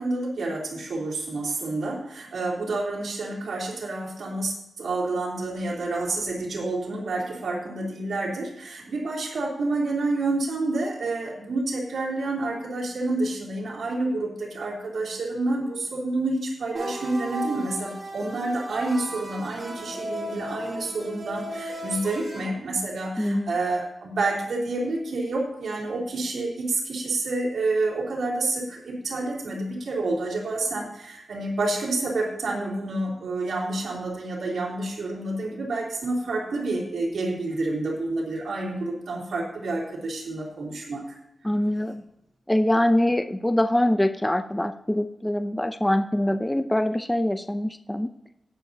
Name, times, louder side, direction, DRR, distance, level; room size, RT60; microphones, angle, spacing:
voice 1, 0.0-41.0, right 2 dB, 75° right, -5 dB, 3.5 m, -29 dB
sound 1, 16.7-22.4, right 1 dB, 45° right, 4.7 m, -35 dB
voice 2, 23.2-23.5 41.4-42.0 42.5-48.1, left 1 dB, 10° left, 8 dB, 0.6 m, -24 dB
18.5 x 6.9 x 2.8 m, 0.83 s
wide cardioid pair, 130°, 0 cm